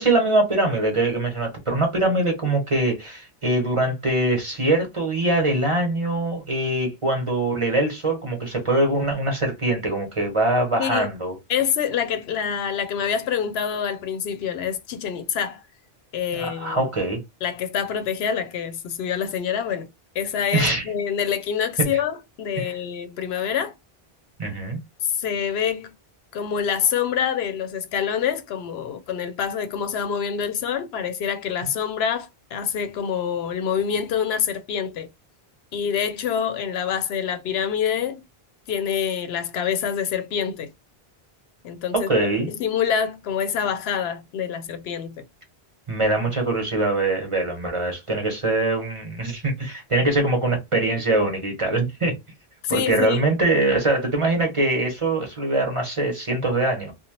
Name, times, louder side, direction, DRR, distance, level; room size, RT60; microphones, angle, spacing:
voice 1, 0.0-11.3 16.3-17.2 20.5-20.8 21.9-22.0 22.6-22.7 24.4-24.8 41.9-42.5 45.9-52.1 52.7-56.9, right 2 dB, 30° right, 0.9 m, -23 dB
voice 2, 11.5-15.6 16.1-16.8 17.4-19.9 20.1-23.7 25.0-25.9 26.3-35.1 35.7-38.2 38.7-40.7 41.6-42.1 42.5-45.2 52.6-53.3, left 8 dB, 75° left, 0.8 m, -26 dB
2.8 x 2.1 x 2.9 m
omnidirectional pair, 1.1 m